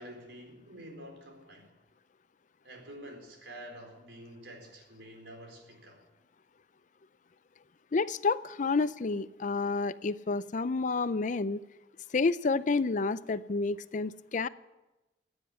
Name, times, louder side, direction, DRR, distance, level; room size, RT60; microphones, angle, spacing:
voice 1, 0.0-1.7 2.6-6.0, right 1 dB, 80° right, 4.3 m, -48 dB
voice 2, 7.9-11.6 12.1-14.5, left 4 dB, 45° left, 0.5 m, -29 dB
15.5 x 9.8 x 9.4 m
head